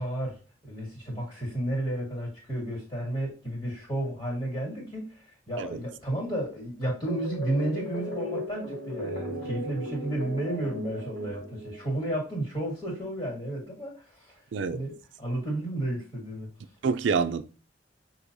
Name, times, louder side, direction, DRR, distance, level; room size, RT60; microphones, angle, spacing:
voice 1, 0.0-14.4 14.7-16.5, right 1 dB, 25° left, 2.2 m, -32 dB
sound 1, 7.1-12.2, equal, 45° left, 1.8 m, -36 dB
voice 2, 16.8-17.4, right 5 dB, 80° right, 0.4 m, -27 dB
6.1 x 2.9 x 2.6 m
head